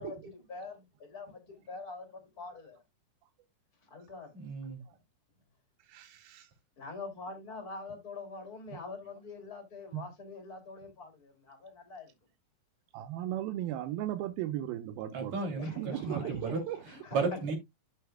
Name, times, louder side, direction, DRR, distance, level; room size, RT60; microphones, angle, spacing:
voice 1, 0.0-2.8 3.8-4.3 6.8-12.1 15.6-16.6 16.9-17.5, left 3 dB, 30° left, 2.5 m, -45 dB
voice 2, 4.3-4.8 15.1-17.5, right 4 dB, 50° right, 3.7 m, -34 dB
voice 3, 5.9-6.5 9.9-10.0 12.9-15.4 15.8-16.8, right 13 dB, 90° right, 2.6 m, -36 dB
12.5 x 5.6 x 2.2 m
omnidirectional pair, 4.2 m